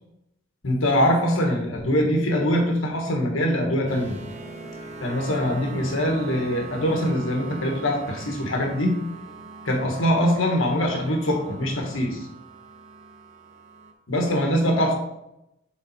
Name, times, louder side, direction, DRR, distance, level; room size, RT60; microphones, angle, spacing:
voice 1, 0.6-4.2 5.0-9.0 9.6-12.3 14.1-14.9, equal, 80° left, 1 dB, 1.5 m, -23 dB
sound 1, 3.9-13.9, right 3 dB, 35° right, 0.6 m, -41 dB
7.0 x 4.0 x 4.3 m, 0.85 s
head